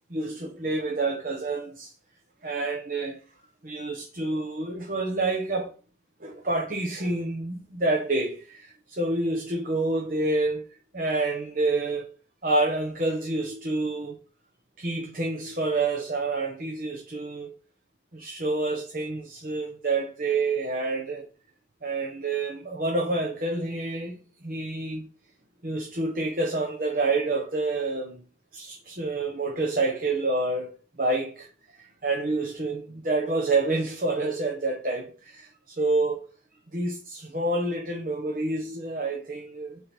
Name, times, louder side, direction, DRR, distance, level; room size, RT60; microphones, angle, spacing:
voice 1, 0.1-1.9 2.4-3.2 3.6-5.7 6.2-10.6 10.9-12.1 12.4-14.2 14.8-17.5 18.1-21.3 21.8-25.1 25.6-28.2 28.5-30.7 31.0-31.5 31.8-36.2 36.7-39.8, right 2 dB, 45° right, 1.2 m, -28 dB
9.0 x 3.9 x 4.5 m
head